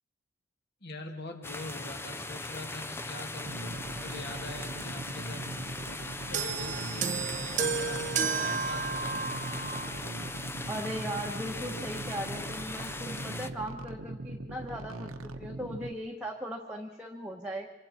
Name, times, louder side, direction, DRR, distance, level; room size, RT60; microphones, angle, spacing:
voice 1, 0.8-5.5 6.3-8.1 8.4-9.5, left 2 dB, 50° left, 3 dB, 2.3 m, -43 dB
sound 1, 1.4-13.5, left 2 dB, 10° left, 0.6 m, -39 dB
sound 2, 3.4-15.9, right 2 dB, 90° right, 1.2 m, -41 dB
sound 3, 6.3-9.9 10.8-11.0, right 5 dB, 35° right, 0.8 m, -32 dB
voice 2, 10.7-17.7, equal, 5° right, -2 dB, 1.2 m, -38 dB
26.0 x 24.0 x 4.4 m, 1.2 s
head